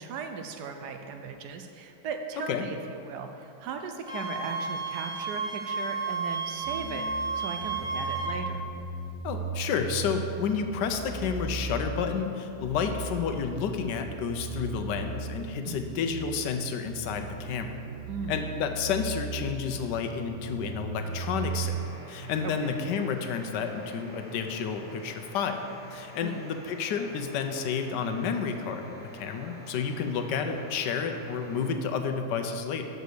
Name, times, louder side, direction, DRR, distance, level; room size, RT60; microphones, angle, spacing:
voice 1, 0.0-8.6 15.6-15.8 18.1-18.4 22.6-22.7 26.2-26.4, right 5 dB, 70° right, 5 dB, 1.1 m, -37 dB
Wind instrument woodwind instrument, 4.1-8.3, right 4 dB, 5° right, 0.6 m, -32 dB
sound 1, 6.6-21.8, right 5 dB, 35° left, 0.7 m, -38 dB
voice 2, 9.2-17.8 18.3-21.8 22.1-25.6 25.9-32.8, left 6 dB, 80° left, 6 dB, 1.2 m, -30 dB
sound 2, 21.0-31.7, right 1 dB, 45° right, 0.6 m, -48 dB
6.7 x 5.0 x 6.4 m, 2.9 s
omnidirectional pair, 1.9 m